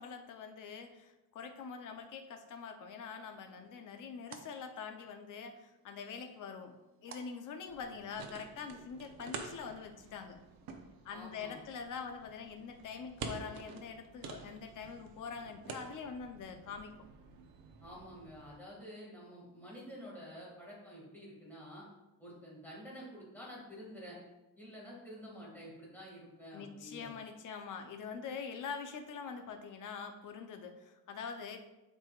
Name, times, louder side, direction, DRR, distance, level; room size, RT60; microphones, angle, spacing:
voice 1, 0.0-6.7 7.0-10.4 11.0-17.0 26.5-31.6, left 6 dB, 55° left, 6 dB, 0.8 m, -44 dB
sound 1, 2.9-8.3, right 5 dB, 35° right, 0.6 m, -59 dB
sound 2, 7.7-18.6, right 5 dB, 70° right, 0.9 m, -49 dB
voice 2, 11.1-11.6 17.8-21.8 22.2-24.2 24.6-27.1 28.0-28.1, equal, 5° left, -5 dB, 2.2 m, -49 dB
11.5 x 4.8 x 2.5 m, 1.0 s
cardioid pair, 180°, 37 cm